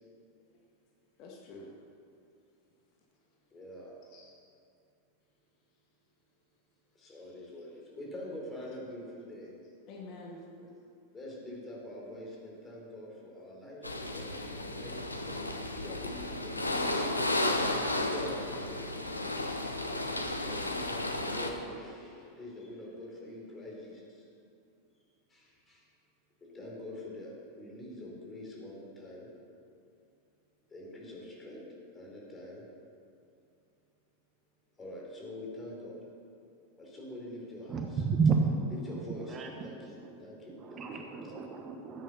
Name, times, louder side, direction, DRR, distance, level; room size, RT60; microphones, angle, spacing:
voice 1, 1.2-1.7 4.1-4.3 7.0-7.1 9.9-10.4 14.3-14.9, left 3 dB, 40° left, -1 dB, 1.7 m, -49 dB
voice 2, 3.5-4.2 6.9-9.6 10.6-10.7 11.1-17.2 18.1-19.2 20.2-24.3 25.3-25.9 26.4-29.4 30.7-32.7 34.8-36.0 36.8-38.1 38.7-41.6, left 1 dB, 15° left, -2 dB, 3.8 m, -45 dB
sound 1, 13.8-21.5, left 1 dB, 85° left, 1.0 m, -33 dB
voice 3, 37.7-38.7 39.3-39.5 40.6-42.0, right 5 dB, 25° right, 3 dB, 1.1 m, -30 dB
14.0 x 9.1 x 5.6 m, 2.5 s
figure-of-eight pair, 90°, 0 cm